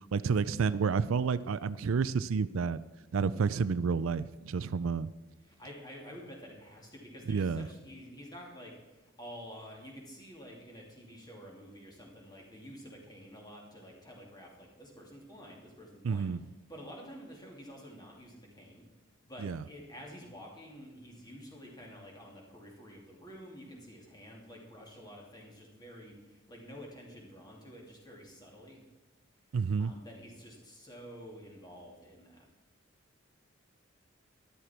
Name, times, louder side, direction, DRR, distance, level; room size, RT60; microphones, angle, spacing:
voice 1, 0.1-2.8 3.1-5.1 7.3-7.7 16.0-16.4 19.4-19.6 29.5-29.9, right 5 dB, 75° right, 16 dB, 0.4 m, -30 dB
voice 2, 5.4-16.3 16.7-18.8 19.2-28.8 29.8-32.5, equal, 20° left, -1 dB, 2.6 m, -49 dB
13.0 x 11.5 x 4.4 m, 1.1 s
head